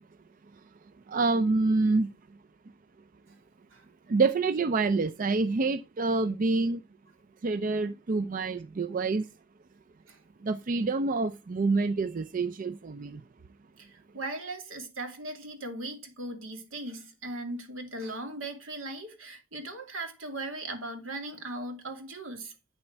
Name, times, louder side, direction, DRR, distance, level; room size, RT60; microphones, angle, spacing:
voice 1, 1.1-2.1 4.1-6.8 7.4-9.2 10.4-13.2, right 3 dB, 40° right, 0.4 m, -27 dB
voice 2, 13.8-22.5, right 2 dB, 80° right, 2.5 m, -38 dB
8.8 x 7.3 x 4.5 m
head